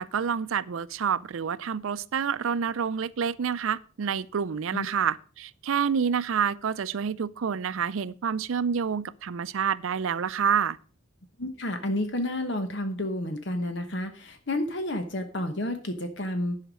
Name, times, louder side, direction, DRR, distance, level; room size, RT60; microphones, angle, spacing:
voice 1, 0.0-10.8, right 7 dB, 80° right, 0.5 m, -28 dB
voice 2, 11.4-16.7, left 1 dB, 60° left, 1.1 m, -30 dB
11.0 x 5.7 x 6.2 m
head